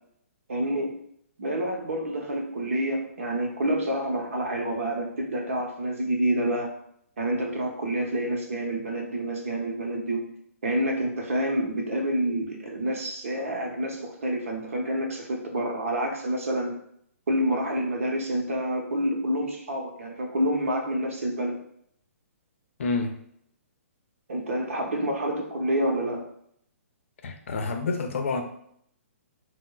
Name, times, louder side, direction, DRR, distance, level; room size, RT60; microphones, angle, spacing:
voice 1, 0.5-0.9 1.4-6.7 7.2-10.2 10.6-16.7 17.3-21.6 24.3-26.3, right 1 dB, 65° right, 1 dB, 0.8 m, -28 dB
voice 2, 22.8-23.1 27.2-28.4, left 3 dB, 60° left, 5 dB, 0.5 m, -28 dB
4.5 x 2.1 x 2.3 m, 0.69 s
figure-of-eight pair, 125°, 8 cm